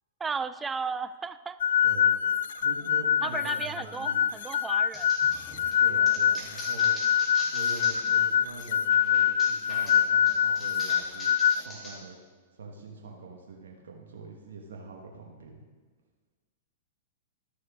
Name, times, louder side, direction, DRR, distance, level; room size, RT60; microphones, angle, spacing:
voice 1, 0.2-1.6 3.2-5.1, right 5 dB, 15° right, 13 dB, 0.3 m, -34 dB
sound 1, 1.6-11.6, left 9 dB, 70° left, 0.3 m, -25 dB
voice 2, 1.8-2.1 2.6-4.3 5.8-6.9 7.5-11.3 11.6-12.2 12.6-15.6, right 3 dB, 75° right, 0 dB, 1.2 m, -44 dB
sound 2, 4.9-8.2 8.6-12.0, equal, 20° left, 2.8 m, -43 dB
13.0 x 6.4 x 3.5 m, 1.5 s
hypercardioid pair, 115°, 0 cm